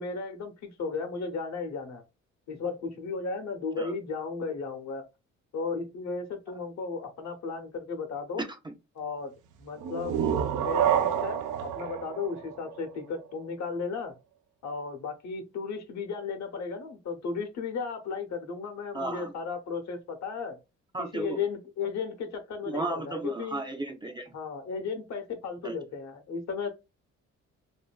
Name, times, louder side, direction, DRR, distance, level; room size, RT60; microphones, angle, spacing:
voice 1, 0.0-2.0 2.5-5.0 5.5-8.4 8.9-9.3 9.6-10.2 10.6-14.1 14.6-20.6 21.0-23.6 24.3-26.7, left 4 dB, 65° left, 0.9 m, -35 dB
voice 2, 8.4-8.7 10.2-10.4 18.9-19.3 20.9-21.4 22.7-24.3 25.6-25.7, right 2 dB, 15° right, 0.4 m, -34 dB
sound 1, 9.8-13.4, right 9 dB, 85° right, 0.5 m, -29 dB
2.7 x 2.6 x 2.2 m
cardioid pair, 90°, 30 cm